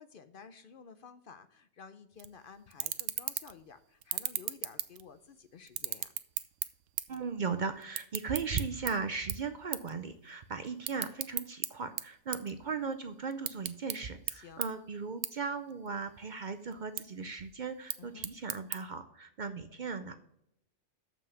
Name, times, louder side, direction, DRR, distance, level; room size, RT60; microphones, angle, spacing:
voice 1, 0.0-6.1 14.3-14.6 18.0-18.3, left 6 dB, 55° left, 11 dB, 0.7 m, -53 dB
sound 1, 2.2-2.3 2.7-3.6 4.0-5.3 5.7-7.2 7.5-8.9 9.3-9.5 9.7-9.9 10.3-11.7 12.0-12.9 13.3-14.0 14.3-14.4 14.6-14.7 15.2-15.3 15.7-16.2 16.7-17.0 17.7-18.8, right 12 dB, 85° right, 0.9 m, -35 dB
voice 2, 7.1-20.1, right 5 dB, 50° right, 9 dB, 0.6 m, -37 dB
7.0 x 5.9 x 6.9 m, 0.75 s
omnidirectional pair, 1.2 m